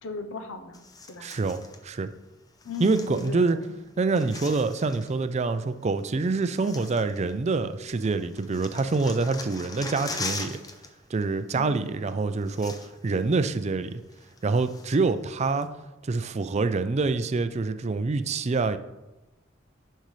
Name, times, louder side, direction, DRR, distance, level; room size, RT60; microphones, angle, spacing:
voice 1, 0.0-1.3 2.6-3.7 11.5-11.9, left 3 dB, 80° left, 7 dB, 0.8 m, -38 dB
sound 1, 0.7-1.8 2.6-3.7 3.9-5.2 6.0-6.1 6.4-7.6 7.9-10.9 11.1-11.4 12.1-12.2 12.4-13.2 13.5-13.6 14.1-15.1 15.6-15.7, left 3 dB, 20° left, 0.6 m, -40 dB
voice 2, 1.2-2.1 2.8-3.6 4.0-10.6 11.1-12.8 13.0-14.0 14.4-15.7 16.0-18.8, right 3 dB, 35° right, 11 dB, 0.4 m, -26 dB
10.5 x 5.5 x 3.2 m, 1.0 s
head